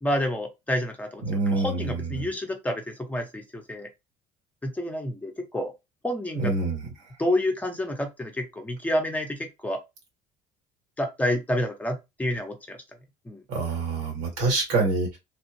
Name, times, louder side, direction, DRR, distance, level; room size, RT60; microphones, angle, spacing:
voice 1, 0.0-3.9 4.6-5.7 6.0-6.6 7.2-9.8 11.0-12.8 13.2-13.4, left 1 dB, 10° left, 0.8 m, -29 dB
voice 2, 1.2-2.3 6.4-6.8 13.5-15.2, right 3 dB, 90° right, 2.0 m, -26 dB
3.2 x 2.4 x 3.0 m
cardioid pair, 110°, 13 cm